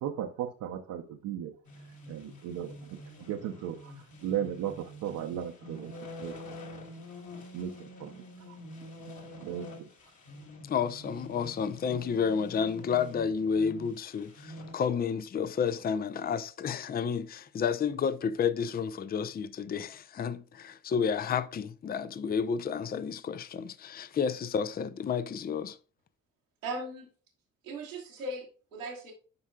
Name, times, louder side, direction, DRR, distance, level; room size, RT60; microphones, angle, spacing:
voice 1, 0.0-1.5 2.1-2.7 3.2-6.4 7.5-8.6 9.3-9.9, right 10 dB, 55° right, 0.9 m, -36 dB
sound 1, 1.6-14.7, left 1 dB, 50° left, 2.5 m, -47 dB
voice 2, 10.7-25.8, left 6 dB, 25° left, 0.6 m, -31 dB
voice 3, 26.6-27.1 27.6-29.1, right 2 dB, 85° right, 1.5 m, -38 dB
10.5 x 5.4 x 2.3 m
figure-of-eight pair, 45°, 39 cm